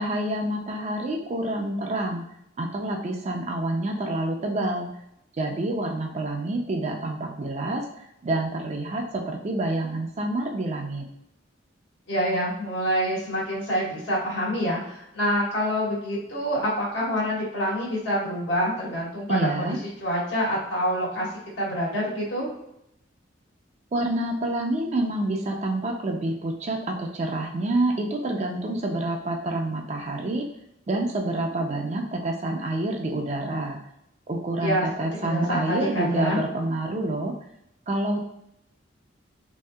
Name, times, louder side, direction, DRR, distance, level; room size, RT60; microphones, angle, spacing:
voice 1, 0.0-2.3 2.6-4.9 5.4-11.0 19.3-19.8 23.9-30.5 30.9-33.8 34.3-37.3 37.9-38.2, right 2 dB, 35° right, 2 dB, 0.4 m, -28 dB
voice 2, 12.1-19.8 20.0-21.3 21.6-22.5 34.6-34.9 35.2-36.4, equal, 85° left, -6 dB, 1.4 m, -26 dB
3.1 x 2.7 x 2.2 m, 0.79 s
head